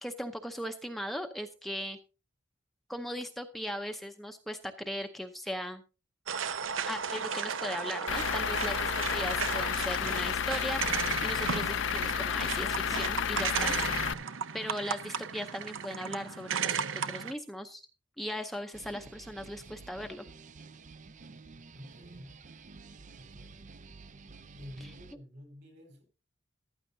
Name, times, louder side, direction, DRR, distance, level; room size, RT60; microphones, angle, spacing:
voice 1, 0.0-2.0 2.9-5.8 6.9-13.7 14.2-14.3 14.5-17.8 18.2-20.3 24.8-24.9, equal, ahead, 0.7 m, -38 dB
sound 1, 6.3-17.3, right 6 dB, 75° right, 0.7 m, -35 dB
Truck / Idling, 8.1-14.1, left 8 dB, 65° left, 0.5 m, -31 dB
sound 2, 18.7-25.2, right 4 dB, 40° right, 0.5 m, -51 dB
voice 2, 21.7-22.4 23.2-23.7 24.5-26.0, left 1 dB, 60° right, 4.3 m, -50 dB
14.5 x 12.0 x 2.7 m
head